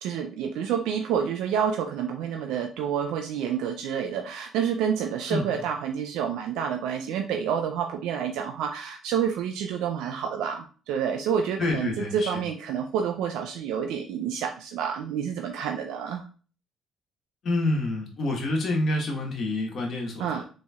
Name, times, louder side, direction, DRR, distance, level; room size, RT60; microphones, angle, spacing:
voice 1, 0.0-16.3 20.2-20.4, right 8 dB, 85° right, 4 dB, 0.3 m, -29 dB
voice 2, 5.3-5.6 11.6-12.4 17.4-20.4, left 2 dB, 55° left, 1 dB, 1.2 m, -28 dB
4.1 x 3.0 x 2.3 m, 0.38 s
cardioid pair, 80°, 0 cm